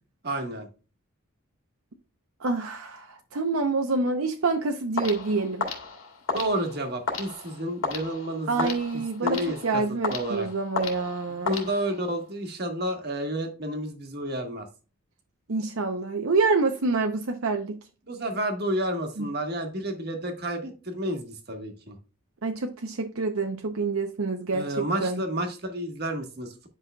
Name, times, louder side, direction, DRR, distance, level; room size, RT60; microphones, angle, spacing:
voice 1, 0.2-0.7 6.3-8.7 9.2-9.8 10.1-10.5 11.4-14.7 18.1-22.0 24.5-26.5, right 1 dB, 45° right, 1.4 m, -30 dB
voice 2, 2.4-5.7 8.5-9.4 9.6-11.6 15.5-17.8 19.2-19.3 22.4-25.2, right 3 dB, 75° right, 0.7 m, -27 dB
sound 1, 5.0-12.2, left 4 dB, 70° left, 2.1 m, -34 dB
10.0 x 5.5 x 2.3 m
head